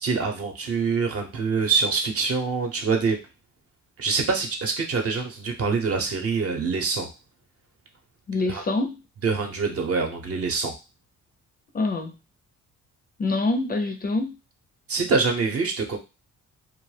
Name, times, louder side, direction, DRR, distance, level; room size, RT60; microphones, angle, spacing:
voice 1, 0.0-3.2 4.0-7.1 8.5-8.6 9.2-10.7 14.9-16.0, right 4 dB, 50° right, 3 dB, 0.8 m, -25 dB
voice 2, 8.3-9.0 11.7-12.2 13.2-14.4, left 2 dB, 30° left, 5 dB, 0.4 m, -25 dB
2.3 x 2.1 x 3.2 m, 0.28 s
cardioid pair, 90°, 30 cm